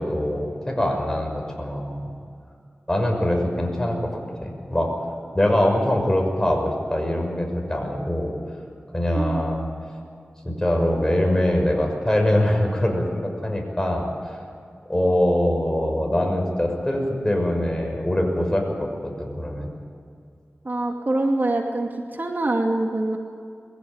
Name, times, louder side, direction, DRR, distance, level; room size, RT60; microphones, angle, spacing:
voice 1, 0.0-2.1 2.9-4.9 5.3-8.4 8.9-9.7 10.4-14.4 14.9-19.7, left 1 dB, 15° left, 2 dB, 6.3 m, -23 dB
voice 2, 20.6-23.2, right 2 dB, 50° right, 2 dB, 2.5 m, -24 dB
22.0 x 16.5 x 9.0 m, 2.3 s
wide cardioid pair, 50°, 4 cm